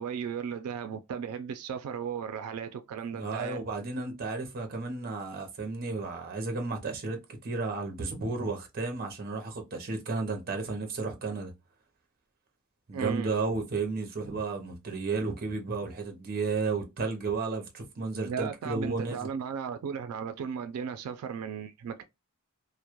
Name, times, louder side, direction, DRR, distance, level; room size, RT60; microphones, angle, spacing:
voice 1, 0.0-3.6 12.9-13.3 18.2-22.0, right 7 dB, 85° right, 0.3 m, -35 dB
voice 2, 3.1-11.5 12.9-19.3, right 3 dB, 45° right, 0.6 m, -33 dB
2.2 x 2.0 x 2.8 m
head